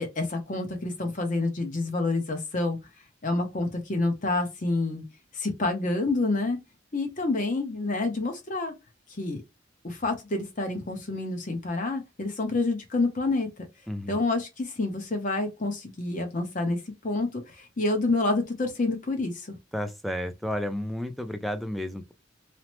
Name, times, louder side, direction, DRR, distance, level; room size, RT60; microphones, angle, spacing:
voice 1, 0.0-2.8 3.2-5.0 5.3-6.6 6.9-8.7 9.1-9.4 9.8-13.7 14.1-19.6, left 2 dB, 40° left, 0.7 m, -28 dB
voice 2, 13.9-14.2 19.7-22.1, left 1 dB, ahead, 0.3 m, -32 dB
3.0 x 2.0 x 3.0 m
head